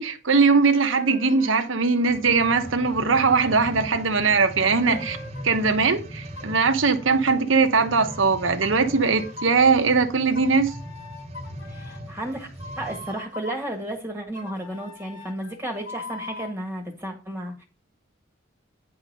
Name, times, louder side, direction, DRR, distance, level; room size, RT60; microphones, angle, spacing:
voice 1, 0.0-5.2 5.4-10.7, right 4 dB, 80° right, 1.1 m, -20 dB
sound 1, 0.7-1.7 2.3-5.7 6.3-8.2 8.6-9.7 10.3-13.7 14.3-16.5, left 2 dB, 70° left, 1.9 m, -43 dB
sound 2, 1.9-13.3 13.9-14.0, equal, 30° right, 1.2 m, -40 dB
voice 2, 11.7-12.5 12.8-17.6, right 1 dB, 10° right, 1.6 m, -33 dB
9.7 x 3.9 x 6.6 m
head